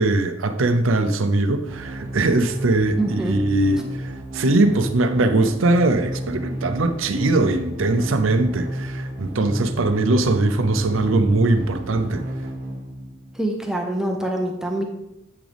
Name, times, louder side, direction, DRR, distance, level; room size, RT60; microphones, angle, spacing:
voice 1, 0.0-12.2, right 2 dB, 75° right, 0.7 m, -21 dB
sound 1, 1.7-13.6, right 1 dB, 40° right, 1.1 m, -32 dB
voice 2, 3.0-3.4 13.4-14.8, right 1 dB, 5° right, 0.7 m, -25 dB
8.3 x 6.2 x 3.5 m
head